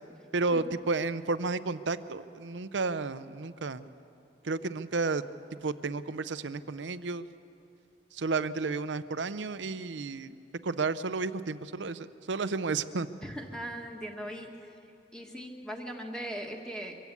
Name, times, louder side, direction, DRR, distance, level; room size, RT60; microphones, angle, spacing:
voice 1, 0.3-3.8 4.4-5.2 5.6-7.3 8.1-10.3 10.6-13.1, right 3 dB, 90° right, 14 dB, 0.7 m, -32 dB
voice 2, 13.2-14.7 15.1-16.9, equal, 5° left, 1 dB, 1.7 m, -39 dB
23.5 x 15.5 x 8.4 m, 2.7 s
head